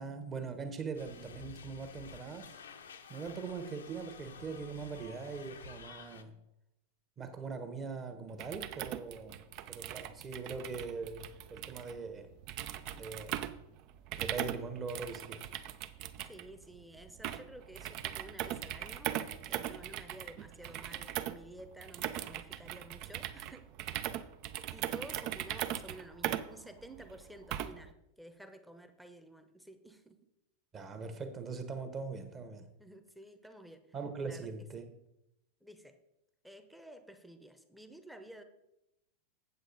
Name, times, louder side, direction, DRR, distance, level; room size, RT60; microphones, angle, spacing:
voice 1, 0.0-2.5 3.1-6.3 7.2-9.4 9.7-12.3 12.9-13.5 14.2-15.4 30.7-32.7 33.9-34.9, right 4 dB, 25° right, 1.1 m, -41 dB
sound 1, 0.9-6.2, left 6 dB, 65° left, 0.7 m, -51 dB
sound 2, 8.3-27.9, right 11 dB, 40° right, 0.5 m, -40 dB
voice 2, 16.3-24.2 24.7-30.2 32.8-33.9 34.2-34.9 35.6-36.0 36.4-38.4, right 1 dB, ahead, 0.8 m, -52 dB
8.1 x 7.9 x 4.0 m
figure-of-eight pair, 90°, 0 cm